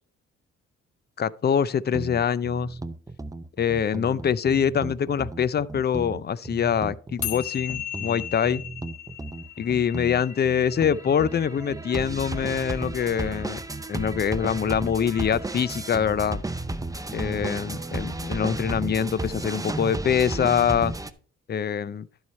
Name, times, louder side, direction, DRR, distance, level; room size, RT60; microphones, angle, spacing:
voice 1, 1.2-2.8 3.6-8.6 9.6-13.6 13.9-16.4 17.1-20.9 21.5-22.1, left 8 dB, 35° left, 0.5 m, -24 dB
sound 1, 1.9-21.1, right 2 dB, 10° right, 0.7 m, -34 dB
sound 2, 7.2-13.8, left 11 dB, 65° left, 1.3 m, -38 dB
12.0 x 4.8 x 4.2 m
supercardioid pair, 60°, 30 cm